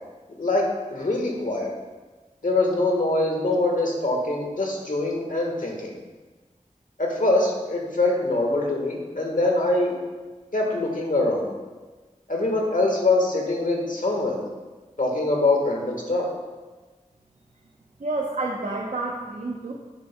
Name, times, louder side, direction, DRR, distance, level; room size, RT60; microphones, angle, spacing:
voice 1, 0.9-1.7 2.4-5.9 7.0-9.9 10.5-11.5 12.3-14.4 15.0-16.2, left 2 dB, 80° left, 0 dB, 1.4 m, -23 dB
voice 2, 18.0-19.7, right 2 dB, 70° right, -1 dB, 0.7 m, -29 dB
10.0 x 7.3 x 2.2 m, 1.3 s
wide cardioid pair, 50°, 13 cm